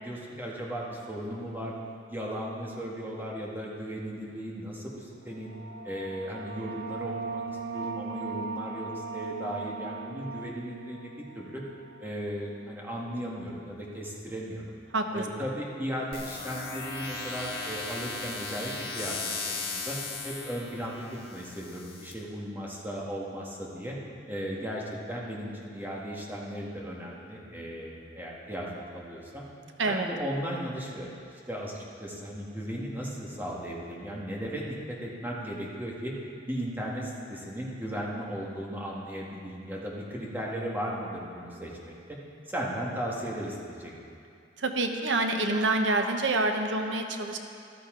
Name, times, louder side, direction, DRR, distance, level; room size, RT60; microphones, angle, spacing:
voice 1, 0.0-1.7 2.1-5.5 5.8-11.6 12.0-14.6 15.1-20.0 20.2-21.0 21.3-24.0 24.3-29.4 29.8-36.1 36.5-41.9 42.5-43.9, equal, 10° right, -4 dB, 1.7 m, -36 dB
sound 1, 5.3-12.6, right 4 dB, 65° right, 0.6 m, -39 dB
voice 2, 14.9-15.5 29.8-30.1 44.6-47.4, right 2 dB, 90° right, 5 dB, 1.0 m, -27 dB
sound 2, 16.1-22.1, left 4 dB, 55° left, 1.8 m, -37 dB
14.0 x 13.0 x 3.8 m, 2.5 s
head